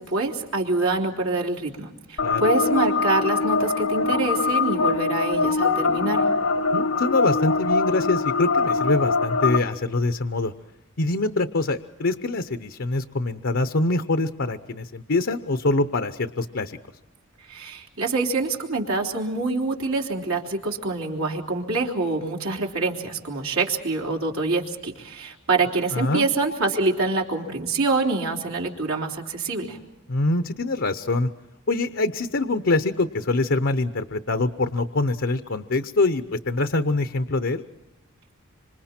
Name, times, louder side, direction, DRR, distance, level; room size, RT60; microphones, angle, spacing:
voice 1, 0.0-6.2 17.5-29.8, right 3 dB, 70° right, 0 dB, 3.5 m, -26 dB
sound 1, 2.2-9.6, left 4 dB, 85° left, 1.4 m, -23 dB
voice 2, 6.7-10.5 11.0-16.7 25.9-26.3 30.1-31.3 31.7-37.6, left 2 dB, 60° left, 8 dB, 0.8 m, -24 dB
26.5 x 26.0 x 4.4 m, 1.0 s
head